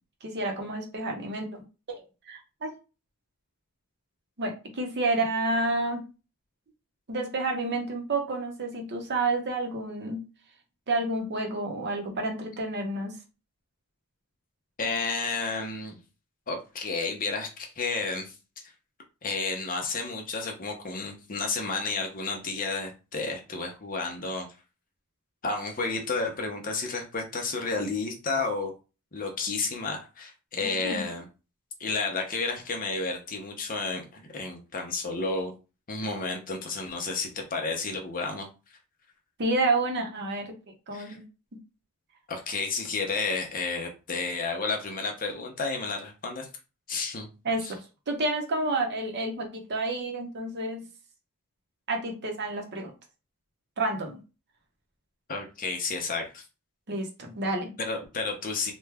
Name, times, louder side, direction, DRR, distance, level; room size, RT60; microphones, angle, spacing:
voice 1, 0.2-1.6 1.9-2.7 4.4-6.1 7.1-10.2 10.9-13.2 30.6-31.0 39.4-40.6 40.9-41.3 47.4-50.8 51.9-52.9 53.8-54.2 56.9-57.7, right 2 dB, 50° right, 2 dB, 0.8 m, -30 dB
voice 2, 14.8-16.0 16.5-18.3 19.2-24.5 25.4-28.7 29.1-31.2 31.8-35.5 35.9-38.5 40.9-41.2 42.3-46.5 46.9-47.3 47.6-47.7 55.3-56.4 57.8-58.7, left 3 dB, 40° left, 2 dB, 0.8 m, -31 dB
3.1 x 2.2 x 3.4 m, 0.31 s
head